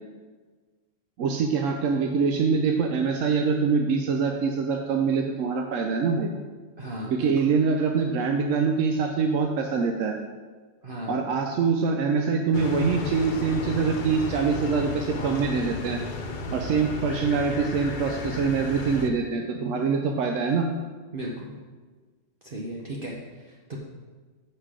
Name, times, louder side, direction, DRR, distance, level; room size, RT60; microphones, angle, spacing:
voice 1, 1.2-6.3 7.1-10.2 11.1-16.0 16.5-20.7, right 5 dB, 85° right, 3 dB, 1.0 m, -24 dB
voice 2, 6.8-7.5 10.8-11.4 16.5-16.8 21.1-21.5 22.4-23.8, right 1 dB, 50° right, -3 dB, 1.0 m, -36 dB
sound 1, 12.5-19.1, left 3 dB, 50° left, 0.7 m, -34 dB
8.0 x 5.5 x 4.9 m, 1.4 s
omnidirectional pair, 1.3 m